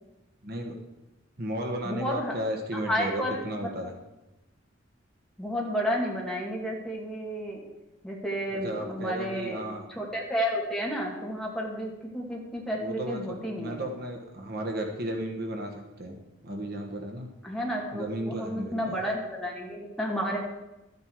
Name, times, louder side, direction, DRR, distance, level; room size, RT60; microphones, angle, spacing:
voice 1, 0.4-0.8 1.4-3.9 8.5-9.8 12.8-17.3 17.9-19.0, right 1 dB, 55° right, 3 dB, 1.4 m, -34 dB
voice 2, 1.8-2.3 2.7-3.9 5.4-7.6 8.0-9.6 9.9-13.8 17.4-20.4, equal, 5° left, -3 dB, 2.3 m, -31 dB
13.0 x 9.7 x 4.7 m, 1.0 s
head